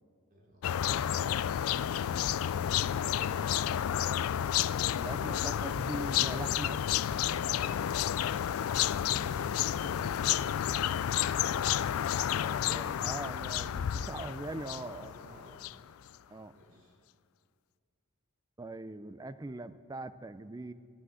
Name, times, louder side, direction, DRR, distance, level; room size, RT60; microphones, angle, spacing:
voice 1, 0.3-1.2 9.7-10.6 14.8-15.8 16.5-16.9, equal, 40° right, -3 dB, 3.8 m, -54 dB
sound 1, 0.6-15.8, left 10 dB, 85° left, 0.3 m, -31 dB
voice 2, 4.9-7.0 9.1-9.7 12.4-15.1 16.3-16.5 18.6-20.7, right 2 dB, 15° right, 13 dB, 0.4 m, -42 dB
12.5 x 12.5 x 7.8 m, 2.2 s
head